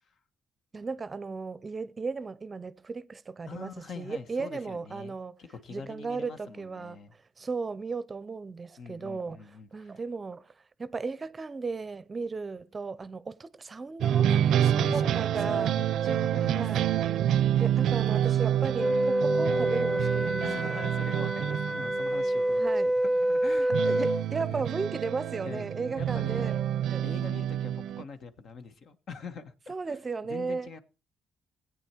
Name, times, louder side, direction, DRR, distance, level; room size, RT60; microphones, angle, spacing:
voice 1, 0.7-5.4 5.7-9.4 9.7-10.5 10.8-14.3 14.9-15.7 16.4-16.8 17.6-20.8 22.6-22.9 23.7-26.6 26.9-27.0 29.7-30.7, right 4 dB, 30° right, 0.6 m, -35 dB
voice 2, 3.5-7.1 8.8-10.0 14.3-16.7 17.8-18.4 20.4-22.6 23.0-23.7 24.3-24.6 25.4-25.7 26.0-26.6 27.0-29.5 29.9-30.0 30.3-30.8, left 5 dB, 60° left, 1.4 m, -43 dB
sound 1, 14.0-22.5 23.7-28.0, right 10 dB, 75° right, 0.5 m, -28 dB
Wind instrument woodwind instrument, 18.8-24.2, right 1 dB, 5° left, 0.8 m, -27 dB
16.5 x 8.7 x 4.5 m
cardioid pair, 90°, 0 cm